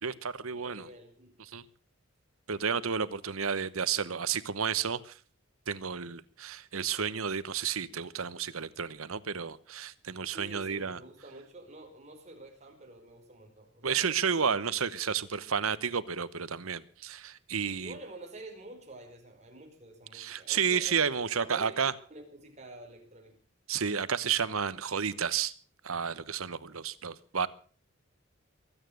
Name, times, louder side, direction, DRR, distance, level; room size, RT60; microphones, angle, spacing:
voice 1, 0.0-0.9 1.5-1.6 2.5-5.1 5.7-11.0 13.8-18.0 20.1-21.9 23.7-25.5 25.8-27.5, right 6 dB, 85° right, 1.1 m, -31 dB
voice 2, 0.5-1.3 10.3-14.2 17.8-21.8 22.1-23.4, right 2 dB, 35° right, 5.0 m, -48 dB
23.0 x 9.2 x 6.5 m
head